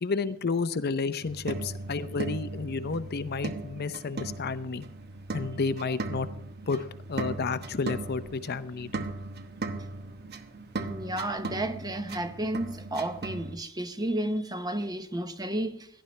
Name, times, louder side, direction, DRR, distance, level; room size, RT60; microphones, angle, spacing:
voice 1, 0.0-4.9 5.3-6.3 6.7-9.1, left 4 dB, 50° left, 0.6 m, -31 dB
sound 1, 1.2-13.6, right 3 dB, 50° right, 1.1 m, -38 dB
voice 2, 10.8-15.9, right 1 dB, 20° right, 0.9 m, -32 dB
17.5 x 11.5 x 3.2 m
head